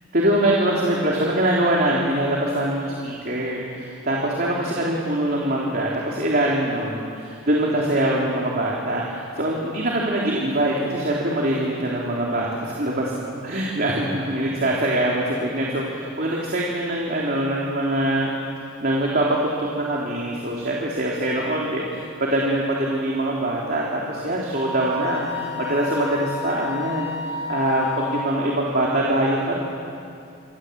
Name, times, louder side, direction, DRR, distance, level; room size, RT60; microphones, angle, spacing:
voice 1, 0.1-13.1 13.4-18.3 18.8-29.5, right 1 dB, 45° right, -4 dB, 3.5 m, -23 dB
Wind instrument woodwind instrument, 24.5-28.4, left 5 dB, 15° right, 4.8 m, -31 dB
28.0 x 25.0 x 8.3 m, 2.4 s
head